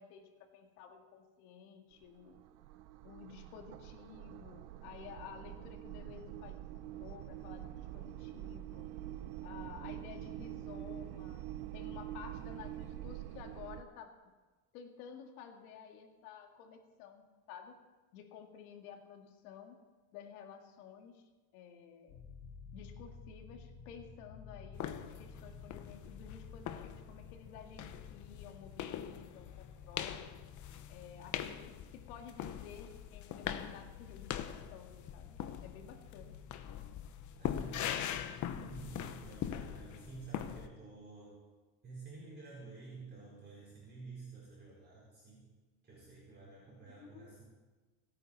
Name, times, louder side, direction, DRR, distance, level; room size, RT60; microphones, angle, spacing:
voice 1, 0.0-2.4 3.0-8.9 9.4-11.4 11.7-14.3 14.7-17.8 18.1-19.8 20.1-22.2 22.7-30.3 30.9-36.4 46.8-47.4, left 7 dB, 90° left, 4 dB, 2.2 m, -53 dB
sound 1, 1.9-13.8, right 13 dB, 85° right, 0.8 m, -46 dB
sound 2, 22.1-31.9, left 4 dB, 65° left, 3.9 m, -54 dB
sound 3, 24.7-40.7, left 10 dB, 45° left, 1.0 m, -42 dB
voice 2, 37.3-41.4 41.8-45.5 45.8-47.4, right 4 dB, 25° right, -6 dB, 4.9 m, -51 dB
26.5 x 9.2 x 4.2 m, 1.3 s
cardioid pair, 135°, 42 cm